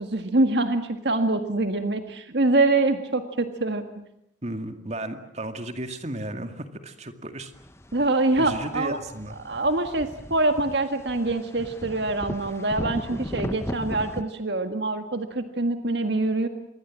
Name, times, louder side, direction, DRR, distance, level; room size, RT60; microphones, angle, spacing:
voice 1, 0.0-3.8 7.9-9.0 9.4-16.5, right 2 dB, 65° right, 7 dB, 1.8 m, -24 dB
voice 2, 4.4-7.5 8.4-9.4, right 1 dB, 35° right, 7 dB, 2.2 m, -34 dB
sound 1, 7.5-14.2, left 1 dB, 15° left, 0.9 m, -36 dB
26.5 x 22.0 x 7.5 m, 0.76 s
head